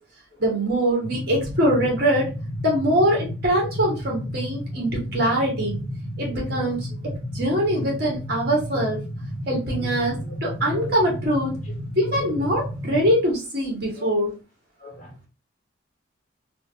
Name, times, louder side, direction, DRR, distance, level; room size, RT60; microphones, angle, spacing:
voice 1, 0.4-2.3 2.6-5.8 6.2-9.0 9.5-11.6 11.9-14.3, equal, 50° right, -2 dB, 1.6 m, -23 dB
sound 1, 1.0-13.1, equal, 60° left, 1.1 m, -32 dB
voice 2, 6.3-6.7 7.7-7.9 9.8-9.9 10.7-10.9 12.1-12.3 13.9-14.1 14.8-15.3, left 2 dB, 40° left, 0 dB, 1.2 m, -41 dB
3.5 x 2.7 x 2.8 m, 0.31 s
head